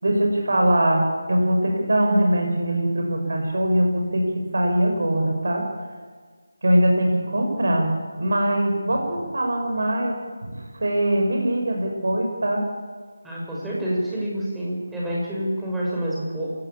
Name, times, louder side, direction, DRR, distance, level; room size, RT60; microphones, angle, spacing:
voice 1, 0.0-4.3 4.5-5.7 6.6-12.7, right 1 dB, 55° right, 2 dB, 6.1 m, -22 dB
voice 2, 13.2-16.5, equal, 5° right, -7 dB, 6.3 m, -27 dB
27.5 x 18.5 x 8.8 m, 1.5 s
figure-of-eight pair, 160°, 0 cm